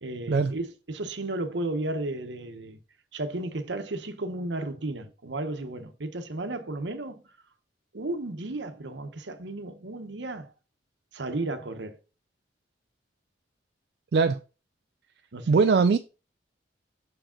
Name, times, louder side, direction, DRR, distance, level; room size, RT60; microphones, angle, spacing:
voice 1, 0.0-2.8 3.1-7.2 7.9-10.5 11.1-12.0 15.3-15.6, right 2 dB, 75° right, 0.9 m, -34 dB
voice 2, 15.5-16.0, right 4 dB, 60° right, 0.3 m, -21 dB
6.4 x 5.0 x 3.8 m
head